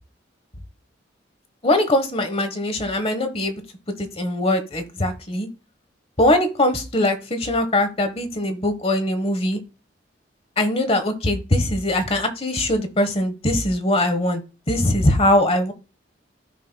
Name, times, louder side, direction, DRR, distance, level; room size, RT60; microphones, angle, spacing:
voice 1, 1.6-3.6 4.0-5.5 6.2-9.6 10.6-14.4 14.7-15.7, left 1 dB, 30° left, 9 dB, 1.1 m, -21 dB
13.0 x 5.5 x 2.3 m, 0.32 s
head